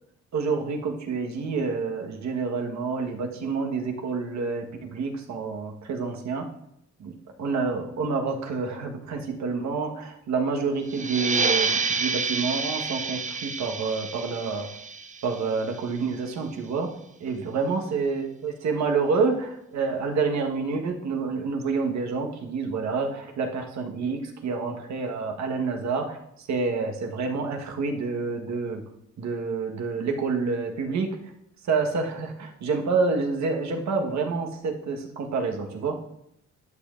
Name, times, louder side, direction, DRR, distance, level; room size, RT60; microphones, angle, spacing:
voice 1, 0.3-6.5 7.0-14.7 15.2-16.9 17.2-28.8 29.2-31.1 31.6-36.0, right 4 dB, 65° right, 2 dB, 1.4 m, -28 dB
sound 1, 10.9-16.1, right 4 dB, 25° right, 0.6 m, -29 dB
11.5 x 6.6 x 2.5 m, 0.76 s
cardioid pair, 90°, 30 cm